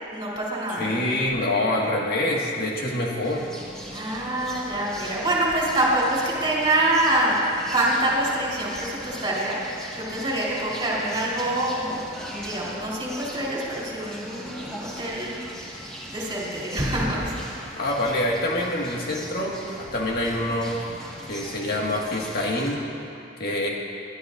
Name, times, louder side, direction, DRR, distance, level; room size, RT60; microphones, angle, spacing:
voice 1, 0.1-1.2 3.9-7.4 7.7-15.4 16.1-17.3 17.6-17.8, right 1 dB, 25° right, -6 dB, 3.5 m, -26 dB
voice 2, 0.8-3.5 17.8-20.8 21.3-22.8 23.4-23.7, left 1 dB, 55° left, -2 dB, 1.8 m, -26 dB
sound 1, 3.2-22.8, equal, 5° left, 1.7 m, -40 dB
23.0 x 11.5 x 2.6 m, 2.6 s
head